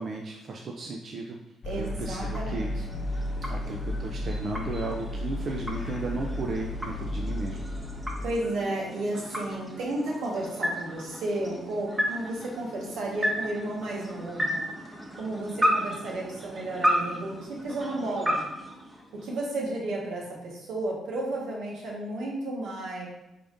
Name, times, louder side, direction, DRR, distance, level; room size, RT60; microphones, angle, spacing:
voice 1, 0.0-1.4 1.8-2.7 3.5-7.7, right 3 dB, 50° right, 1 dB, 0.4 m, -35 dB
sound 1, 1.6-8.3, left 2 dB, 45° left, 0.5 m, -33 dB
voice 2, 1.6-3.0 8.2-14.6 15.2-18.4 19.2-23.1, right 1 dB, 85° right, -3 dB, 1.3 m, -33 dB
sound 2, 1.8-19.6, equal, 10° right, 0.8 m, -34 dB
4.9 x 3.6 x 2.6 m, 0.91 s
cardioid pair, 90°, 0 cm